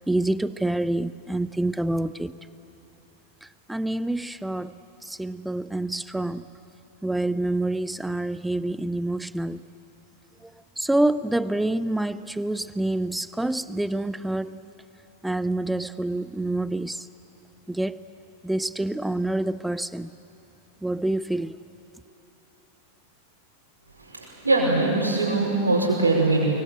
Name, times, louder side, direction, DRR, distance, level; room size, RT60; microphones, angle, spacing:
voice 1, 0.1-2.3 3.7-4.7 5.1-6.4 7.0-9.6 10.8-14.6 15.2-17.1 17.7-18.0 18.4-20.1 20.8-21.5, right 1 dB, 5° right, 16 dB, 0.6 m, -27 dB
voice 2, 24.0-26.5, right 2 dB, 80° right, -3 dB, 5.3 m, -22 dB
24.5 x 23.0 x 8.1 m, 3.0 s
figure-of-eight pair, 90°, 0 cm